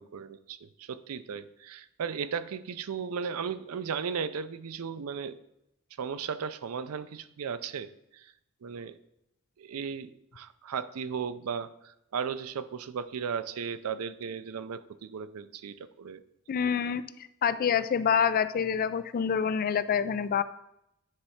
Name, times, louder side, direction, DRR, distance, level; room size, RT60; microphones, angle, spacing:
voice 1, 0.0-5.4 6.0-8.3 8.6-9.0 9.6-16.2, right 6 dB, 85° right, 13 dB, 0.4 m, -36 dB
voice 2, 16.5-17.0 17.4-20.4, left 7 dB, 40° left, 14 dB, 0.3 m, -26 dB
9.8 x 3.3 x 5.6 m, 0.81 s
head